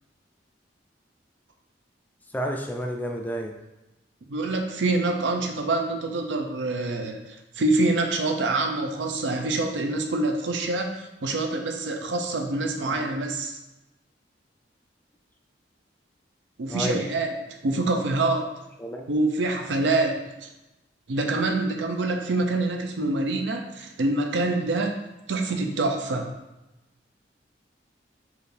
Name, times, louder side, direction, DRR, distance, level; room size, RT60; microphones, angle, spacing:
voice 1, 2.3-3.6 12.8-13.1 16.7-17.0 18.8-19.1, equal, 10° left, 2 dB, 0.3 m, -30 dB
voice 2, 4.3-13.6 16.6-18.5 19.1-20.5 21.1-24.9 25.3-26.3, right 2 dB, 85° right, 3 dB, 0.5 m, -26 dB
4.8 x 2.5 x 3.3 m, 0.98 s
head